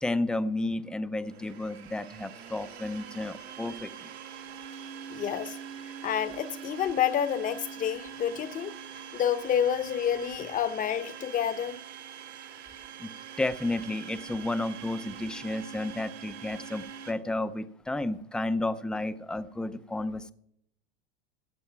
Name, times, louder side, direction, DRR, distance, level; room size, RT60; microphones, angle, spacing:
voice 1, 0.0-4.1 13.0-13.1 13.4-20.3, left 2 dB, 5° left, 0.5 m, -32 dB
Domestic sounds home sounds, 1.2-17.1, right 8 dB, 90° right, 3.0 m, -44 dB
voice 2, 5.1-5.6 6.0-8.7 9.1-11.8, left 9 dB, 25° left, 0.8 m, -29 dB
15.5 x 8.4 x 5.8 m
supercardioid pair, 125°, 31 cm